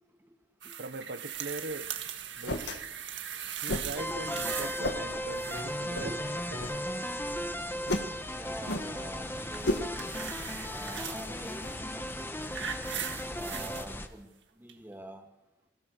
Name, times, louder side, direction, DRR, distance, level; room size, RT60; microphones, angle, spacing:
sound 1, 0.6-4.9 5.1-5.8 9.5-11.3 12.1-13.9 14.7-14.8, right 9 dB, 80° right, 1.9 m, -39 dB
voice 1, 0.8-1.9 2.4-2.8 3.6-6.1 6.5-6.6, right 2 dB, 65° right, 1.2 m, -41 dB
sound 2, 1.3-12.0, left 1 dB, 70° left, 2.0 m, -38 dB
sound 3, 4.0-14.1, equal, 15° left, 1.5 m, -36 dB
voice 2, 8.3-9.8 10.7-12.6 12.9-14.3 14.6-15.3, right 1 dB, 10° right, 2.6 m, -45 dB
29.0 x 23.0 x 6.8 m
head